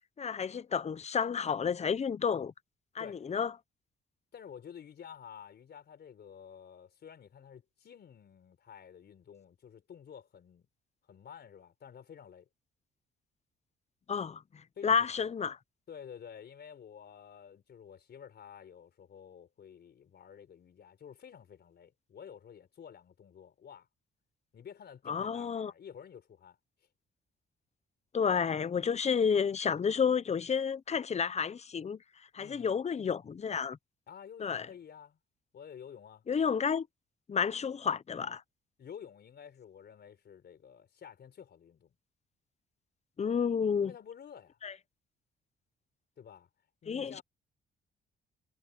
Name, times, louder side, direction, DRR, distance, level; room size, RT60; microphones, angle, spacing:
voice 1, 0.2-2.5 2.9-3.5 14.1-14.4 14.8-15.6 25.1-25.7 28.1-32.0 32.3-33.8 34.4-34.7 36.3-36.9 37.3-38.4 43.2-43.9 44.6-44.7 46.9-47.2, left 6 dB, 35° left, 0.8 m, -30 dB
voice 2, 4.3-10.7 11.1-12.5 14.8-15.3 15.9-23.9 24.5-26.6 32.4-32.7 34.1-35.2 35.5-36.2 38.8-42.0 43.8-44.6 46.2-46.5 46.8-47.2, left 8 dB, 55° left, 4.3 m, -51 dB
cardioid pair, 90°, 20 cm